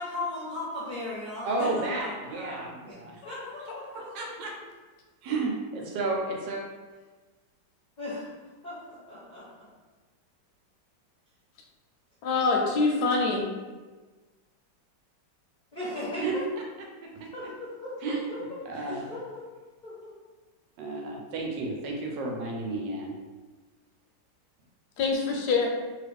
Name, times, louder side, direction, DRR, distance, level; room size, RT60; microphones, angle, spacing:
voice 1, 0.0-2.9 3.2-4.3 8.0-8.3 8.6-9.4 12.5-12.6 15.7-16.4 17.3-19.5 19.8-20.1, left 2 dB, 45° left, -9 dB, 0.6 m, -37 dB
voice 2, 1.4-3.2 3.6-3.7 3.9-4.5 5.2-6.6 16.2-16.3 17.1-17.3 18.0-18.2 18.6-19.1 20.8-23.1, right 3 dB, 85° right, 0 dB, 1.3 m, -32 dB
voice 3, 12.2-13.5 25.0-25.7, left 3 dB, 75° left, 0 dB, 1.1 m, -25 dB
3.0 x 2.4 x 3.3 m, 1.3 s
omnidirectional pair, 1.9 m